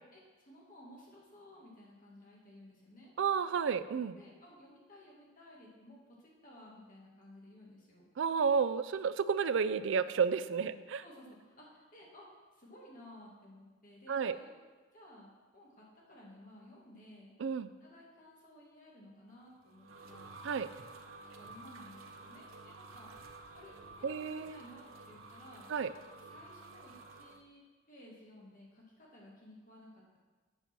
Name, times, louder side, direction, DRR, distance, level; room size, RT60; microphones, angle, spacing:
voice 1, 0.1-3.1 4.2-8.1 10.6-14.5 14.9-15.3 15.5-17.3 17.8-20.4 21.2-23.2 23.5-25.7 26.2-30.2, left 1 dB, 40° left, -4 dB, 2.1 m, -56 dB
voice 2, 3.2-4.2 8.2-11.0 14.1-14.4 17.4-17.7 20.4-20.7 24.0-24.6 25.7-25.9, right 6 dB, 65° right, 14 dB, 0.4 m, -31 dB
sound 1, 19.4-27.4, right 3 dB, 90° right, 0.7 m, -52 dB
8.1 x 5.4 x 6.0 m, 1.3 s
head